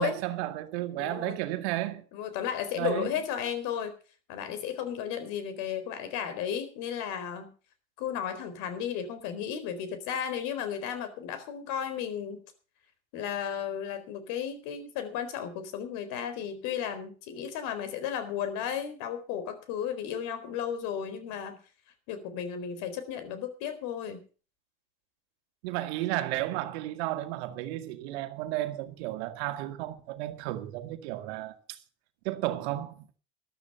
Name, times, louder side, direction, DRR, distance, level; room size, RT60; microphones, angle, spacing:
voice 1, 0.0-2.1 2.8-3.1 25.6-31.8 32.2-33.1, right 15 dB, 70° right, 1.8 m, -33 dB
voice 2, 1.0-1.4 2.1-3.9 4.3-7.5 8.0-12.4 13.1-21.6 22.1-24.2, left 8 dB, 65° left, 4.2 m, -34 dB
14.0 x 12.0 x 5.6 m
hypercardioid pair, 80°, 34 cm